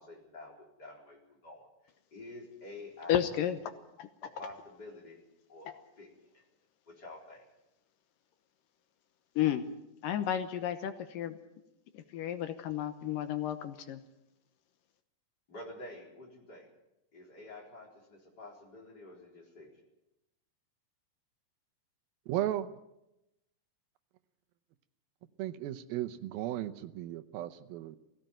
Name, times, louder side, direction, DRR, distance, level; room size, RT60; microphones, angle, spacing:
voice 1, 0.0-1.7 2.1-3.4 3.7-3.8 4.2-5.2 5.5-6.4 6.9-7.4 15.5-16.7 17.1-19.7, left 2 dB, 25° left, -1 dB, 4.4 m, -49 dB
voice 2, 3.1-3.6 4.0-4.1 5.7-5.8 9.4-9.6 10.0-11.4 11.9-14.0, left 11 dB, 75° left, 10 dB, 2.6 m, -32 dB
voice 3, 22.3-22.7 25.4-28.0, right 13 dB, 90° right, 10 dB, 2.8 m, -35 dB
19.0 x 16.5 x 9.0 m, 0.90 s
omnidirectional pair, 4.1 m